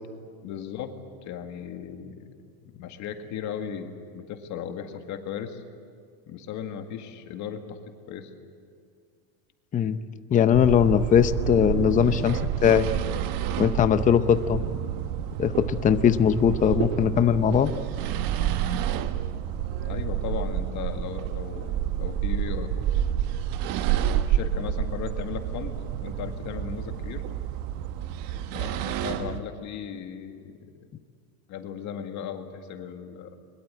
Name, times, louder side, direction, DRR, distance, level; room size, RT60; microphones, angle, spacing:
voice 1, 0.4-0.9 1.2-2.3 2.6-5.6 6.3-7.8 8.1-8.3 19.7-22.9 24.3-27.2 28.5-30.9 31.5-33.3, left 8 dB, 40° left, 6 dB, 2.0 m, -36 dB
voice 2, 10.3-12.9 13.6-14.6 15.4-17.7, left 8 dB, 20° left, 11 dB, 0.7 m, -20 dB
sound 1, 10.5-29.4, right 10 dB, 50° right, 1.2 m, -29 dB
22.5 x 22.0 x 8.9 m, 2.2 s
supercardioid pair, 145°, 43 cm